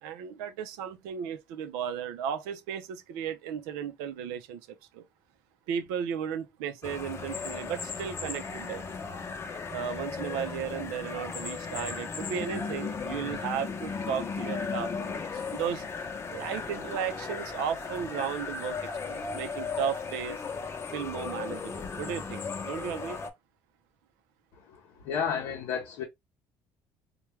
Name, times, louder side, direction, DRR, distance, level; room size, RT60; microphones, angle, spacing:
voice 1, 0.0-4.6 4.9-5.0 5.7-8.9 9.7-15.8 16.3-18.8 19.1-20.4 20.9-23.2, right 8 dB, 85° right, 0.5 m, -35 dB
sound 1, 6.8-23.3, left 5 dB, 35° left, 0.7 m, -36 dB
voice 2, 25.1-26.0, left 7 dB, 75° left, 0.7 m, -31 dB
3.3 x 2.2 x 3.0 m
supercardioid pair, 80°, 7 cm